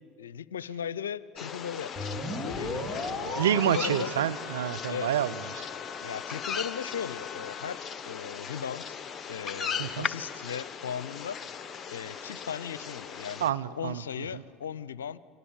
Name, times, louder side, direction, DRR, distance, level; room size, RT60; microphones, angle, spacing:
voice 1, 0.0-4.1 4.8-5.1 6.0-9.0 9.3-11.4 11.9-15.2, left 8 dB, 85° left, 19 dB, 0.6 m, -37 dB
sound 1, 1.4-13.5, left 6 dB, 35° left, 1.2 m, -38 dB
sound 2, 2.0-7.7, left 2 dB, 5° left, 4.9 m, -38 dB
voice 2, 3.4-5.7 9.8-10.1 13.4-14.0, right 10 dB, 85° right, 10 dB, 0.8 m, -28 dB
29.5 x 25.0 x 7.2 m, 2.5 s
hypercardioid pair, 75°, 0 cm